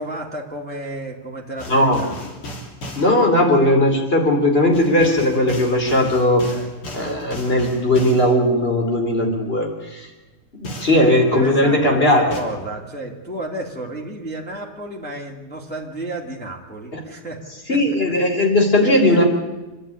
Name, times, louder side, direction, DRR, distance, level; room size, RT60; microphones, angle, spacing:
voice 1, 0.0-1.7 2.0-2.3 6.5-6.7 10.9-17.4 17.7-17.8 18.1-18.2 18.8-19.2, right 1 dB, 5° left, -1 dB, 2.4 m, -32 dB
sound 1, 1.6-3.1 4.7-8.3 10.6-11.0 12.3-12.4, equal, 80° left, 4.1 m, -35 dB
voice 2, 1.7-2.0 2.9-6.5 6.9-10.1 10.8-12.4 16.9-17.0 17.7-19.2, left 1 dB, 25° left, 2 dB, 4.0 m, -17 dB
27.5 x 11.5 x 10.0 m, 1.1 s
omnidirectional pair, 2.4 m